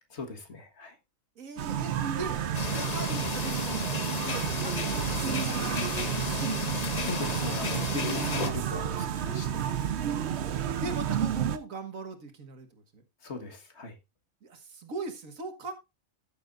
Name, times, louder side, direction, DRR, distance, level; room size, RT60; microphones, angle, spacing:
voice 1, 0.1-1.0 7.0-9.9 13.2-14.0, left 3 dB, 55° left, 1.8 m, -39 dB
voice 2, 1.4-6.5 10.4-13.0 14.4-15.7, right 3 dB, 80° right, 1.9 m, -41 dB
sound 1, 1.6-11.6, right 9 dB, 60° right, 0.9 m, -31 dB
sound 2, 2.5-8.5, left 4 dB, 35° left, 1.0 m, -33 dB
13.5 x 7.2 x 2.5 m
omnidirectional pair, 1.4 m